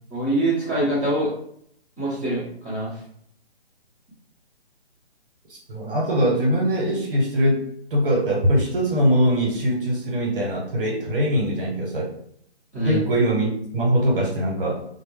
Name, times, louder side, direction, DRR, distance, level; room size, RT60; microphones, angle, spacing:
voice 1, 0.1-1.3 2.0-2.9 12.7-13.0, right 1 dB, 5° left, -15 dB, 0.9 m, -24 dB
voice 2, 5.5-7.6 7.9-12.1 12.8-14.8, equal, 55° right, -2 dB, 1.0 m, -22 dB
2.1 x 2.1 x 3.4 m, 0.65 s
figure-of-eight pair, 150°, 33 cm